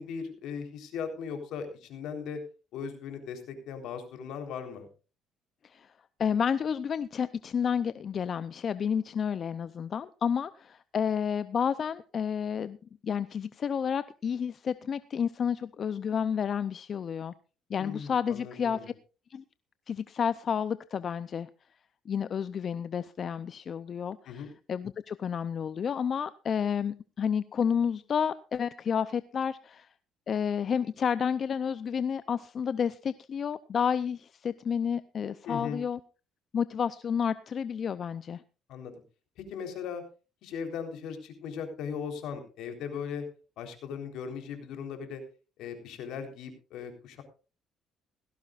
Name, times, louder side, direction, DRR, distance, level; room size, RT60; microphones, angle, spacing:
voice 1, 0.0-2.4 2.7-4.9 17.8-18.9 24.3-24.5 35.5-35.8 38.7-38.9 39.4-40.0 40.4-43.2 43.6-45.2 45.6-47.2, left 6 dB, 75° left, 6 dB, 3.8 m, -38 dB
voice 2, 6.2-12.8 13.0-17.3 17.7-18.9 19.3-19.4 19.9-21.5 22.1-29.9 30.3-36.0 36.5-38.4, left 7 dB, 45° left, 14 dB, 0.5 m, -30 dB
17.5 x 16.0 x 2.5 m, 0.34 s
cardioid pair, 120°, 0 cm